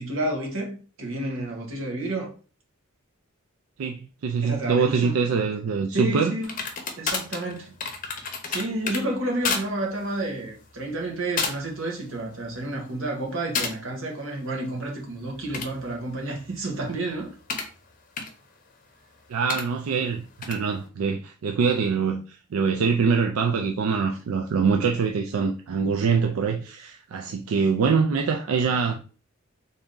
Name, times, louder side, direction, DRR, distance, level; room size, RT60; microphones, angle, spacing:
voice 1, 0.0-2.3 4.4-5.1 5.9-6.6 7.0-7.7 8.5-17.3, right 2 dB, 65° right, 1.2 m, -30 dB
voice 2, 3.8-6.3 19.3-29.0, right 5 dB, 90° right, 0.4 m, -24 dB
sound 1, 6.4-9.0 9.4-9.7 10.0-10.3 10.9-11.1 11.4-11.8 12.2-12.6 13.5-13.7 15.3-17.7 18.2-18.3 19.5-19.6 20.4-20.6, left 5 dB, 40° left, 0.6 m, -31 dB
3.5 x 2.7 x 3.7 m
head